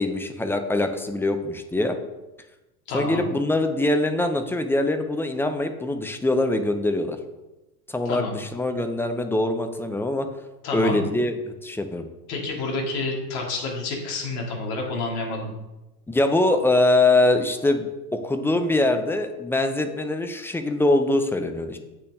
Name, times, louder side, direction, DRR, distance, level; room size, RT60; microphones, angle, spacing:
voice 1, 0.0-2.0 2.9-7.2 7.9-10.3 10.7-12.1 16.1-21.8, left 2 dB, 5° left, 7 dB, 0.5 m, -23 dB
voice 2, 2.9-3.3 8.1-8.4 10.6-11.0 12.3-15.5, left 3 dB, 50° left, 0 dB, 2.5 m, -29 dB
8.0 x 6.0 x 3.6 m, 1.0 s
figure-of-eight pair, 85°, 49 cm